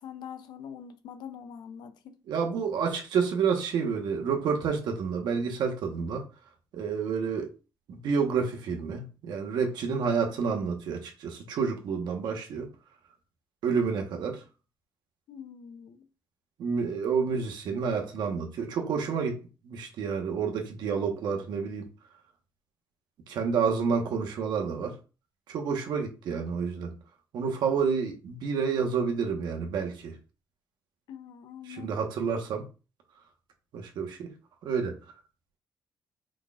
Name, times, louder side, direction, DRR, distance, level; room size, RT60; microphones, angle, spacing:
voice 1, 0.0-2.2 15.3-16.1 31.1-32.0, left 8 dB, 80° left, 0.6 m, -44 dB
voice 2, 2.3-6.2 6.7-7.5 7.9-12.7 13.6-14.4 16.6-19.4 19.6-21.9 23.3-25.0 25.5-26.9 27.3-30.1 31.7-32.7 33.7-34.3 34.6-35.0, right 6 dB, 80° right, 1.2 m, -29 dB
4.9 x 4.1 x 2.4 m
cardioid pair, 120°, 7 cm